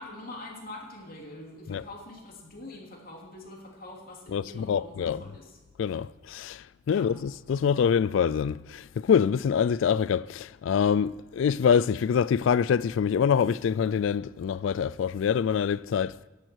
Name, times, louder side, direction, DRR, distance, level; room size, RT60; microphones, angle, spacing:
voice 1, 0.0-5.6 6.9-7.1, left 2 dB, 50° left, 3.1 m, -44 dB
voice 2, 4.3-5.2 5.8-16.1, left 7 dB, 75° left, 0.3 m, -25 dB
15.5 x 11.0 x 4.6 m
head